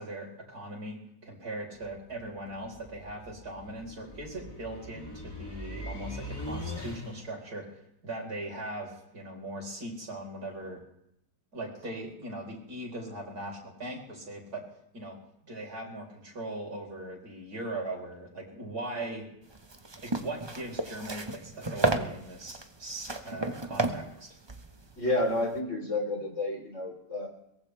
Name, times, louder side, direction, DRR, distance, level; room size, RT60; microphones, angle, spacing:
voice 1, 0.0-7.7 8.0-10.8 11.5-14.6 14.9-15.2 15.5-19.3 20.0-24.3, right 1 dB, 60° right, -1 dB, 4.8 m, -39 dB
sound 1, 1.7-7.4, left 1 dB, 15° left, 2.6 m, -42 dB
sound 2, 19.5-25.6, right 2 dB, 20° right, 0.8 m, -33 dB
voice 2, 25.0-27.3, left 2 dB, 45° left, 1 dB, 4.1 m, -30 dB
22.5 x 18.5 x 3.3 m, 0.79 s
omnidirectional pair, 1.9 m